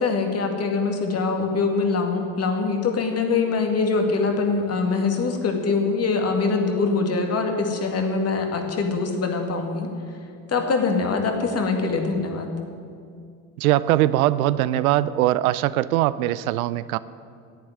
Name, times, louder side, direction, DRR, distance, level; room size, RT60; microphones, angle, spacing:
voice 1, 0.0-9.9 10.5-12.5, left 4 dB, 35° left, 4 dB, 2.2 m, -23 dB
voice 2, 13.6-17.0, right 14 dB, 90° right, 16 dB, 0.6 m, -21 dB
10.5 x 8.7 x 9.5 m, 2.3 s
supercardioid pair, 95°, 41 cm